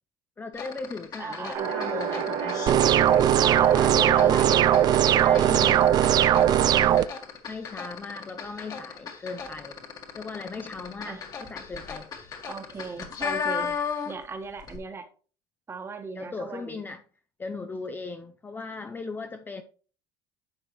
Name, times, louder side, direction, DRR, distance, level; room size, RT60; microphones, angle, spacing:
voice 1, 0.4-2.7 3.8-4.6 5.1-5.9 7.5-9.8 10.2-12.1 16.1-17.0 17.4-19.6, left 3 dB, 15° left, 0.5 m, -38 dB
sound 1, 0.5-14.3 14.6-14.8, left 6 dB, 35° left, 1.8 m, -36 dB
voice 2, 1.2-1.7 3.3-5.1 11.0-11.3 12.5-13.8 14.0-15.1 15.7-16.8, right 4 dB, 25° right, 1.4 m, -37 dB
sound 2, 1.5-6.8, right 8 dB, 65° right, 1.8 m, -29 dB
sound 3, 2.7-7.1, right 11 dB, 40° right, 0.4 m, -20 dB
11.0 x 6.7 x 3.1 m
cardioid pair, 135°, 11 cm